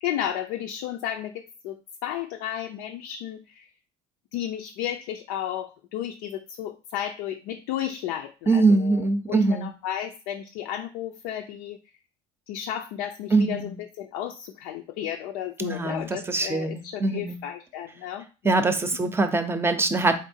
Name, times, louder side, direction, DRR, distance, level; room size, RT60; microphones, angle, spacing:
voice 1, 0.0-3.7 4.3-11.8 12.5-18.7, left 11 dB, 75° left, 4 dB, 0.4 m, -33 dB
voice 2, 8.5-9.7 13.3-13.7 15.6-17.4 18.4-20.2, right 3 dB, 15° right, 9 dB, 0.6 m, -23 dB
3.9 x 3.5 x 2.7 m, 0.33 s
hypercardioid pair, 80°, 15 cm